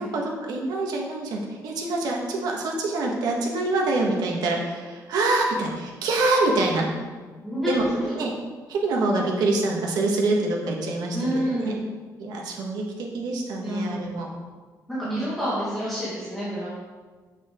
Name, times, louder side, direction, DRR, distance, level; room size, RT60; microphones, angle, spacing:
voice 1, 0.0-6.9 7.6-7.8 8.2-8.3 8.7-11.7 12.2-14.3 15.0-15.3, right 2 dB, 85° right, 0 dB, 1.7 m, -25 dB
voice 2, 7.4-8.2 11.1-11.8 13.6-14.0 14.9-16.7, equal, ahead, -11 dB, 2.0 m, -28 dB
8.2 x 7.4 x 3.8 m, 1.4 s
cardioid pair, 170°, 7 cm